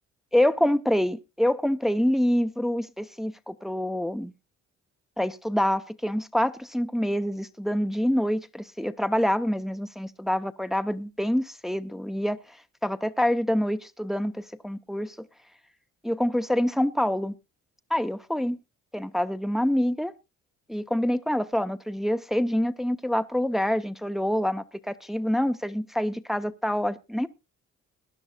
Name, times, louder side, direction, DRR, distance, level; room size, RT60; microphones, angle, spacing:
voice 1, 0.3-4.3 5.2-12.4 12.8-15.3 16.0-17.3 17.9-18.6 18.9-20.1 20.7-27.3, equal, ahead, 0.8 m, -26 dB
21.0 x 10.5 x 2.4 m
cardioid pair, 90°, 30 cm